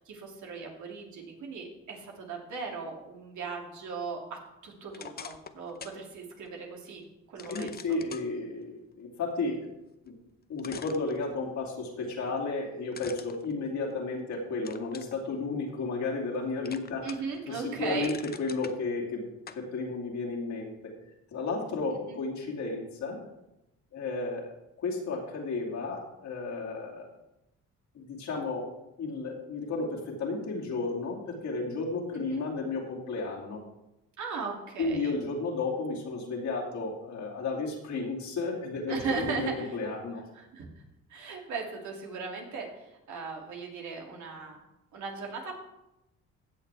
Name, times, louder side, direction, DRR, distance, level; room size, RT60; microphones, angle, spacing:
voice 1, 0.0-7.0 7.3-8.0 17.0-18.1 22.1-22.2 32.2-32.4 34.2-35.1 38.9-39.7 40.3-40.7 41.1-44.6 44.9-45.5, right 4 dB, 75° right, 0 dB, 2.6 m, -37 dB
sound 1, 4.9-6.0 6.5-6.6 7.4-8.3 10.1-10.2 10.6-11.7 12.9-14.2 14.7-15.2 15.7-16.4 16.7-17.4 17.7-18.8 19.5-19.7, left 6 dB, 30° left, 0.7 m, -45 dB
voice 2, 7.5-9.7 10.1-10.2 10.5-17.1 17.4-19.2 19.5-20.9 21.3-23.2 23.9-24.5 24.8-27.1 27.9-28.7 29.0-33.6 34.8-40.3, left 3 dB, 70° left, -3 dB, 2.7 m, -33 dB
16.0 x 6.7 x 3.5 m, 0.91 s
cardioid pair, 90°, 30 cm